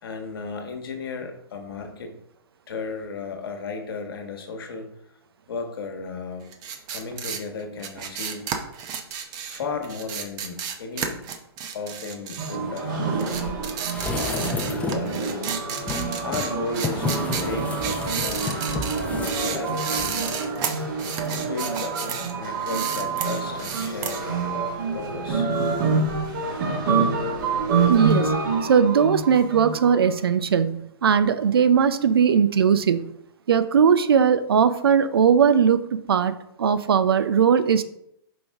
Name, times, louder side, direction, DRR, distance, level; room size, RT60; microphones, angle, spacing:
voice 1, 0.0-2.2 2.7-4.9 5.5-6.5 6.9-8.6 9.4-11.2 11.7-13.2 14.1-15.3 16.2-18.7 19.0-20.5 21.4-21.9 22.4-25.5, left 4 dB, 65° left, 5 dB, 1.3 m, -34 dB
sound 1, 6.5-12.9 13.2-22.3 22.6-24.2, right 7 dB, 30° right, 0.8 m, -32 dB
sound 2, 12.4-30.2, right 4 dB, 55° right, 1.8 m, -27 dB
sound 3, 13.9-15.1 15.8-20.3 20.6-20.7, left 4 dB, 10° left, 0.6 m, -32 dB
voice 2, 27.9-28.3 28.7-33.1 33.5-35.8 36.1-36.3 36.6-37.8, right 7 dB, 70° right, 12 dB, 0.5 m, -19 dB
5.3 x 5.1 x 3.5 m, 0.76 s
hypercardioid pair, 120°, 13 cm